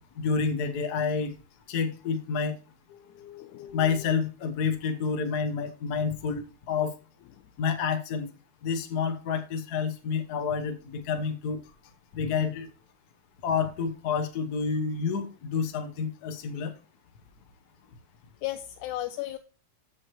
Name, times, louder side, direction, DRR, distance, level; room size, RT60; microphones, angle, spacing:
voice 1, 0.2-1.3 1.7-2.5 3.7-6.4 6.7-6.9 7.6-8.3 8.6-11.6 12.1-12.7 13.4-16.7, left 5 dB, 70° left, 6 dB, 0.9 m, -29 dB
voice 2, 2.9-4.1 7.3-7.5 18.4-19.4, left 14 dB, 85° left, 7 dB, 2.1 m, -36 dB
14.0 x 6.3 x 3.1 m, 0.34 s
omnidirectional pair, 3.3 m